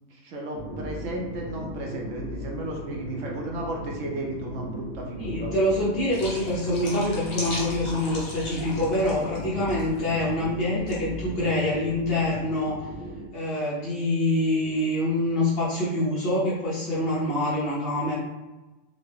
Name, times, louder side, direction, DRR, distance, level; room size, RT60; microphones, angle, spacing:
voice 1, 0.1-5.5, right 1 dB, 70° right, 0 dB, 1.0 m, -34 dB
sound 1, 0.5-13.3, equal, 90° right, 1.4 m, -37 dB
voice 2, 5.2-12.9 13.3-18.2, left 1 dB, 50° left, -7 dB, 1.1 m, -25 dB
sound 2, 6.1-9.4 9.6-10.0 10.9-11.0, left 1 dB, 75° left, 1.5 m, -38 dB
3.8 x 2.1 x 3.4 m, 1.1 s
omnidirectional pair, 1.4 m